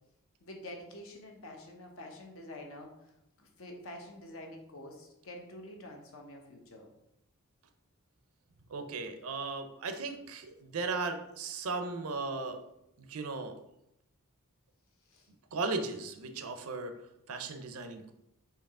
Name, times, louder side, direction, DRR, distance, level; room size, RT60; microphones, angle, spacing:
voice 1, 0.4-6.9 15.1-15.3, left 1 dB, 65° left, 2 dB, 0.8 m, -47 dB
voice 2, 8.7-12.6 13.0-13.6 15.5-16.9 17.3-18.1, right 3 dB, 75° right, 8 dB, 0.5 m, -36 dB
4.6 x 2.8 x 3.6 m, 0.84 s
head